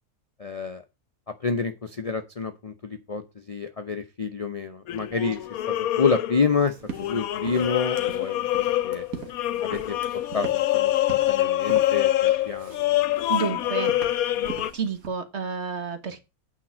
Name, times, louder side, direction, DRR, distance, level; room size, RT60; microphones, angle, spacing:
voice 1, 0.4-0.8 1.3-5.4 5.7-9.0 9.6-13.1 13.5-13.6, left 5 dB, 40° left, 0.5 m, -29 dB
sound 1, 4.9-6.6 6.9-14.7, left 14 dB, 75° left, 1.1 m, -25 dB
sound 2, 6.7-15.1, right 6 dB, 75° right, 1.9 m, -42 dB
voice 2, 13.3-13.9 14.7-16.2, right 5 dB, 50° right, 1.6 m, -30 dB
8.8 x 5.0 x 6.0 m
omnidirectional pair, 1.5 m